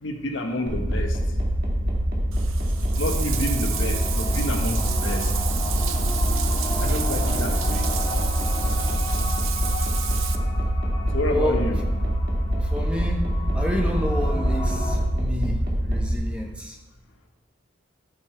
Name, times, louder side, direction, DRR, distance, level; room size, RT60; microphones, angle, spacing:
voice 1, 0.0-1.2 2.9-5.3 6.8-7.9 11.1-11.8, left 1 dB, 75° left, 3 dB, 1.3 m, -29 dB
sound 1, 0.7-16.1, equal, 50° right, 1.9 m, -25 dB
Bathtub (filling or washing), 2.3-10.3, right 10 dB, 85° right, 0.7 m, -32 dB
sound 2, 2.7-15.0, left 1 dB, 20° left, 1.7 m, -33 dB
voice 2, 11.2-11.6 12.6-13.2 13.5-16.8, equal, 5° right, 1 dB, 0.8 m, -30 dB
13.0 x 5.5 x 4.5 m, 1.1 s
head